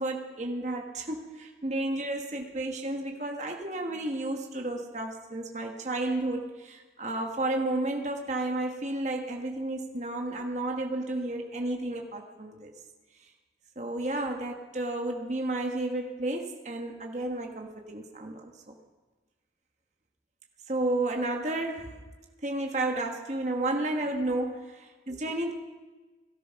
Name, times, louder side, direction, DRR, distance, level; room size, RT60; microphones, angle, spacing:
voice 1, 0.0-12.7 13.8-18.7 20.7-21.9 22.4-25.5, right 2 dB, 40° right, 2 dB, 1.5 m, -32 dB
18.0 x 12.5 x 5.9 m, 1.3 s
head